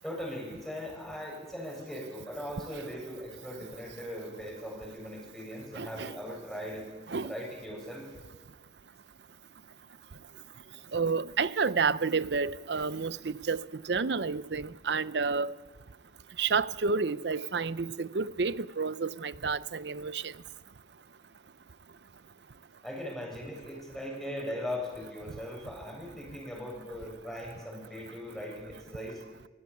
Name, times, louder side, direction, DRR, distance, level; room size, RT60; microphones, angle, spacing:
voice 1, 0.0-6.9 7.2-8.0 22.8-29.2, left 1 dB, ahead, 7.1 m, -39 dB
voice 2, 5.8-6.1 7.1-7.3 10.9-15.5 16.4-20.3, right 4 dB, 75° right, 0.7 m, -30 dB
23.5 x 16.0 x 8.5 m
head